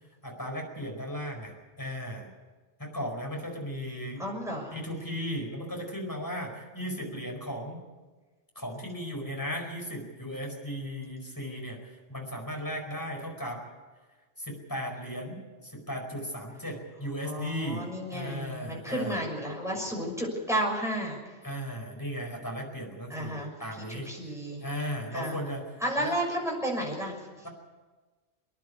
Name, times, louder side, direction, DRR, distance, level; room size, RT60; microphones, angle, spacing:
voice 1, 0.2-2.3 2.8-4.3 4.7-7.8 8.5-13.6 14.4-17.9 18.1-19.2 21.4-24.2 24.6-25.6 26.0-26.1, equal, 15° left, 1 dB, 4.7 m, -36 dB
voice 2, 4.2-4.8 17.2-21.2 23.1-23.5 23.8-24.6 25.1-25.4 25.8-27.5, right 1 dB, ahead, -2 dB, 6.1 m, -32 dB
26.0 x 10.5 x 9.6 m, 1.3 s
omnidirectional pair, 1.2 m